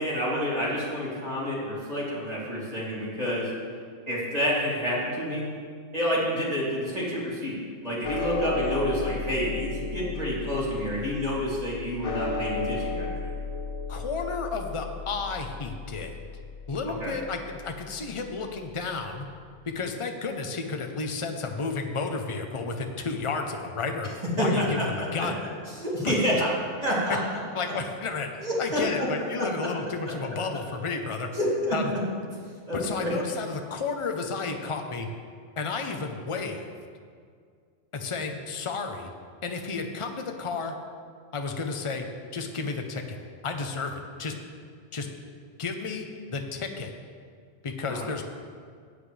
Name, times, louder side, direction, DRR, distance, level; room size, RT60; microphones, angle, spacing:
voice 1, 0.0-3.5 4.1-5.5 5.9-13.3 17.0-17.1 24.4-24.9 25.1-25.3 25.8-26.5 26.8-27.2 28.4-28.8 29.4-29.7 31.3-31.8 32.7-33.1 47.9-48.0, equal, 30° right, -8 dB, 3.2 m, -28 dB
sound 1, 8.0-18.5, left 3 dB, 50° left, 0.4 m, -35 dB
voice 2, 13.9-16.2 16.7-19.2 19.6-24.1 24.4-25.3 26.0-26.2 27.5-31.3 31.7-31.8 32.7-35.1 35.6-36.7 37.9-39.1 39.4-40.7 41.3-42.0 42.3-43.2 43.4-44.3 44.9-45.1 45.6-46.9 47.6-48.2, left 4 dB, 30° left, 4 dB, 0.8 m, -32 dB
15.0 x 9.5 x 3.4 m, 2.1 s
omnidirectional pair, 1.3 m